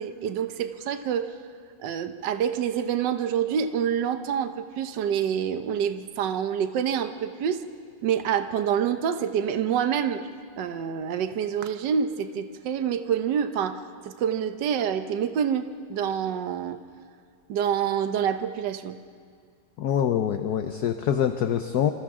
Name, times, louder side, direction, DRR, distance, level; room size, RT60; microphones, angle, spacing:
voice 1, 0.0-1.3 1.8-7.6 8.0-10.3 10.6-16.8 17.5-19.0, right 8 dB, 70° right, 8 dB, 1.5 m, -27 dB
voice 2, 19.8-21.9, left 9 dB, 65° left, 7 dB, 1.2 m, -25 dB
27.5 x 26.5 x 3.7 m, 2.1 s
omnidirectional pair, 2.1 m